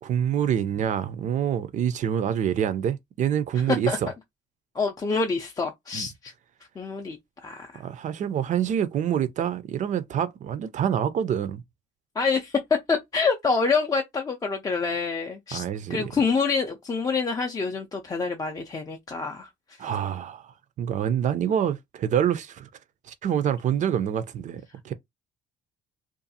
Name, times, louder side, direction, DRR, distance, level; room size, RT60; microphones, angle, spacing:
voice 1, 0.0-4.1 5.9-6.1 7.7-11.6 15.5-16.1 19.8-22.7 23.1-24.9, right 9 dB, 45° right, 0.4 m, -26 dB
voice 2, 3.7-4.0 4.7-6.3 6.8-7.2 7.4-7.8 12.2-12.6 12.9-15.6 15.9-19.5, left 4 dB, 20° left, 0.4 m, -26 dB
2.5 x 2.3 x 2.7 m
cardioid pair, 110°, 17 cm